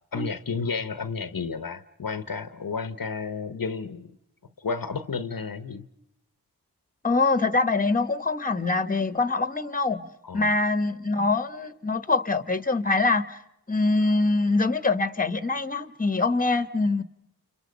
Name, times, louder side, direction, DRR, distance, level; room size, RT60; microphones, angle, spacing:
voice 1, 0.1-4.1 4.6-5.9 10.2-10.5, left 5 dB, 60° left, 13 dB, 1.0 m, -32 dB
voice 2, 7.0-10.1 10.3-13.4 13.7-17.0, left 3 dB, 20° left, 14 dB, 1.2 m, -24 dB
29.5 x 27.5 x 5.2 m, 0.83 s
cardioid pair, 40°, 39 cm